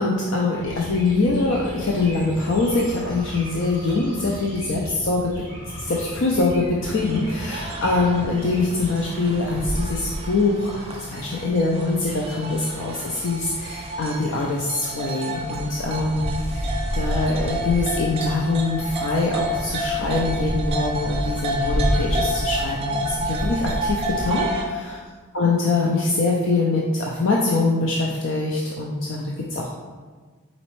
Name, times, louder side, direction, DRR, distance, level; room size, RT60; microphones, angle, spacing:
voice 1, 0.0-5.3 5.8-16.7 16.9-25.0 25.3-29.7, left 3 dB, 65° left, -3 dB, 0.4 m, -23 dB
sound 1, 0.5-8.9, equal, 20° left, 1.3 m, -37 dB
sound 2, 6.8-24.7, right 1 dB, 30° right, 0.5 m, -31 dB
sound 3, 15.4-24.4, equal, ahead, 1.2 m, -29 dB
4.2 x 3.9 x 3.0 m, 1.4 s
head